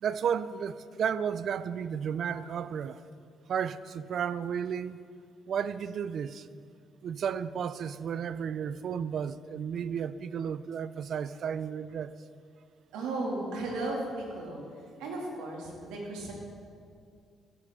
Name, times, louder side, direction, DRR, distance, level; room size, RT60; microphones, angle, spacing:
voice 1, 0.0-3.0 3.5-5.0 5.5-6.5 7.0-12.1, right 7 dB, 60° right, 0.4 m, -33 dB
voice 2, 12.9-14.6 15.0-16.3, right 2 dB, 90° right, 2.4 m, -35 dB
14.5 x 9.1 x 3.7 m
supercardioid pair, 75°, 0 cm